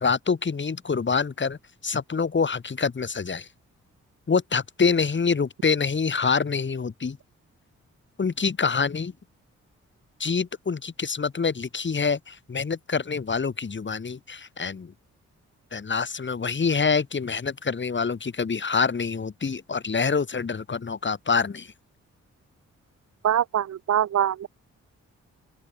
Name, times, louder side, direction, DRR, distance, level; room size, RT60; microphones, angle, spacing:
voice 1, 0.0-1.6 1.8-3.5 4.3-7.2 8.2-9.1 10.2-14.9 15.7-21.7, left 5 dB, 40° left, 1.9 m, -26 dB
voice 2, 23.2-24.5, right 10 dB, 60° right, 0.8 m, -23 dB
open air
cardioid pair, 60°, 30 cm